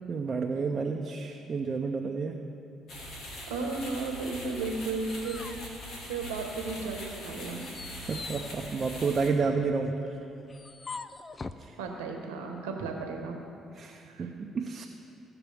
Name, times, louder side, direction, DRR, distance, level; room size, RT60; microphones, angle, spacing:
voice 1, 0.1-2.4 8.0-10.2 11.6-11.8 13.8-14.8, right 4 dB, 40° right, 1 dB, 0.7 m, -30 dB
sound 1, 2.9-9.3, equal, 65° left, 2.1 m, -42 dB
voice 2, 3.5-5.6 6.1-7.6 11.8-13.4 14.1-14.3, right 3 dB, 90° right, 2 dB, 1.2 m, -34 dB
sound 2, 4.6-6.6 7.0-11.7, left 4 dB, 35° left, 0.4 m, -45 dB
17.0 x 5.9 x 3.5 m, 2.7 s
hypercardioid pair, 60°, 0 cm